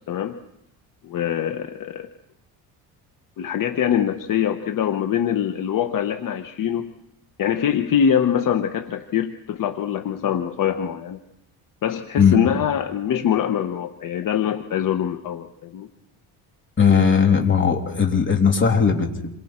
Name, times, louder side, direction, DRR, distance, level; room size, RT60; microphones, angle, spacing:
voice 1, 0.1-0.4 1.0-2.1 3.4-6.9 7.4-11.2 11.8-15.9, left 9 dB, 55° left, 7 dB, 1.1 m, -23 dB
voice 2, 16.8-19.3, left 6 dB, 30° left, 3 dB, 2.9 m, -18 dB
27.5 x 23.0 x 4.4 m, 0.84 s
cardioid pair, 120°, 38 cm